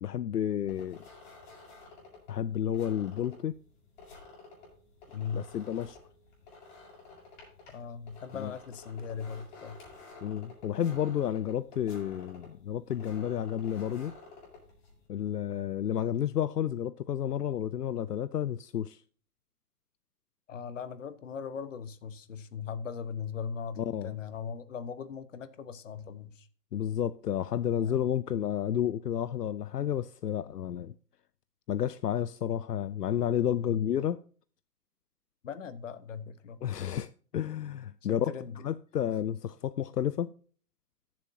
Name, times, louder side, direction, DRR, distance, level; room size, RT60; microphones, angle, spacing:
voice 1, 0.0-1.0 2.3-3.6 5.3-6.0 8.3-8.5 10.2-14.1 15.1-19.0 23.8-24.2 26.7-30.9 31.7-34.2 36.6-38.3 38.6-40.3, left 10 dB, 80° left, 0.6 m, -31 dB
sound 1, 0.7-15.1, left 3 dB, 30° left, 6.4 m, -52 dB
voice 2, 5.1-5.5 7.7-9.8 20.5-26.5 27.8-28.0 33.6-33.9 35.4-36.9 37.3-37.4 38.1-38.6, left 6 dB, 50° left, 1.1 m, -39 dB
19.0 x 7.4 x 2.7 m
figure-of-eight pair, 140°, 47 cm